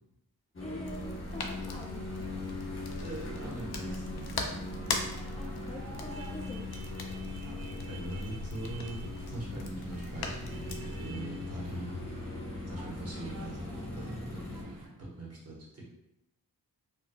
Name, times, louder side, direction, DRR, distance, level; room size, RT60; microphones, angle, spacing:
sound 1, 0.5-14.6, left 2 dB, 35° left, 0.9 m, -41 dB
voice 1, 0.6-2.1 5.4-6.7, left 1 dB, 20° left, 0 dB, 0.5 m, -44 dB
sound 2, 0.8-11.1, left 3 dB, 85° left, 0.5 m, -40 dB
voice 2, 3.0-4.1 7.4-7.5 7.8-12.1 12.7-13.7 13.9-15.8, right 2 dB, 40° right, -5 dB, 1.1 m, -42 dB
sound 3, 3.7-14.9, right 1 dB, 70° right, 1.0 m, -48 dB
4.4 x 2.3 x 2.2 m, 0.87 s
wide cardioid pair, 110°, 36 cm